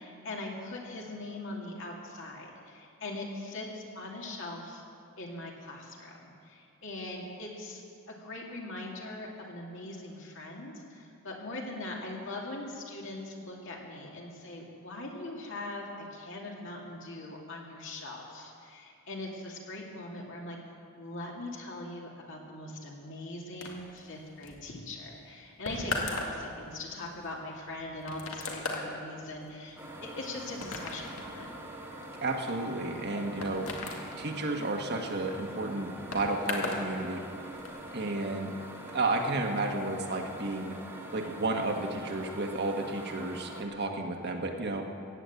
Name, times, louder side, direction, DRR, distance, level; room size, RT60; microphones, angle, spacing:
voice 1, 0.0-4.8 5.2-7.8 8.1-20.6 21.0-31.5 33.5-33.8, left 2 dB, 65° left, -1 dB, 2.5 m, -41 dB
sound 1, 23.6-36.9 37.2-37.8, left 2 dB, 85° left, 2.1 m, -39 dB
sound 2, 29.8-43.6, right 1 dB, 10° right, 1.5 m, -44 dB
voice 2, 32.2-33.7 34.2-37.2 37.9-38.5 38.9-40.8 41.1-44.9, right 2 dB, 55° right, 3 dB, 1.4 m, -32 dB
15.5 x 9.2 x 8.2 m, 2.5 s
head